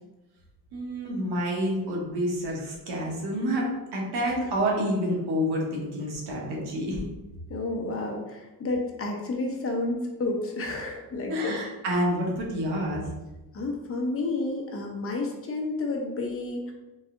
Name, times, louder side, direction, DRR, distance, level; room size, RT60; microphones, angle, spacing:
voice 1, 0.7-7.0 11.3-13.0, equal, 85° right, -2 dB, 1.4 m, -28 dB
voice 2, 7.5-11.6 13.5-16.7, left 2 dB, 35° left, 1 dB, 0.8 m, -31 dB
4.0 x 3.4 x 3.8 m, 1.0 s
cardioid pair, 145°, 38 cm